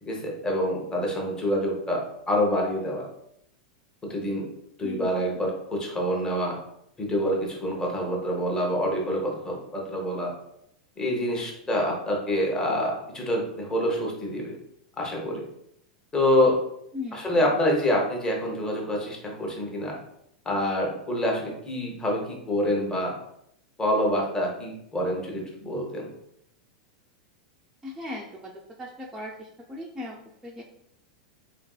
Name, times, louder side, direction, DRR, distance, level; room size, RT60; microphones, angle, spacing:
voice 1, 0.0-2.0 2.3-3.1 4.0-4.5 4.8-6.5 7.0-10.3 11.0-14.6 15.0-15.4 16.1-16.6 17.1-20.0 20.5-23.1 23.8-26.1, equal, 15° left, -1 dB, 0.8 m, -26 dB
voice 2, 27.8-28.5 28.8-30.6, left 2 dB, 5° right, -3 dB, 0.4 m, -38 dB
2.9 x 2.5 x 2.3 m, 0.74 s
hypercardioid pair, 110°, 4 cm